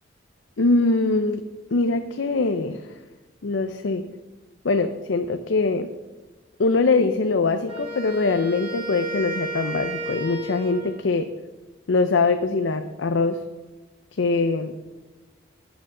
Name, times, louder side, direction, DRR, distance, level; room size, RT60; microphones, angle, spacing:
voice 1, 0.6-1.4 1.7-2.8 3.4-4.0 4.6-5.9 6.6-11.3 11.9-13.4 14.2-14.7, left 3 dB, 85° left, 7 dB, 0.6 m, -22 dB
Wind instrument woodwind instrument, 7.7-11.0, right 1 dB, 30° right, 3.2 m, -33 dB
15.0 x 9.2 x 3.8 m, 1.2 s
head